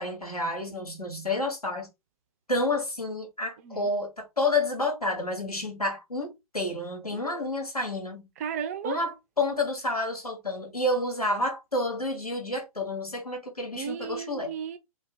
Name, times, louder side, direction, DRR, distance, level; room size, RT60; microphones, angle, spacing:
voice 1, 0.0-1.9 2.5-8.3 8.8-14.5, left 2 dB, 90° left, 1.4 m, -29 dB
voice 2, 8.4-9.0 13.8-14.8, right 7 dB, 25° right, 0.3 m, -34 dB
2.5 x 2.2 x 3.5 m
figure-of-eight pair, 120°, 19 cm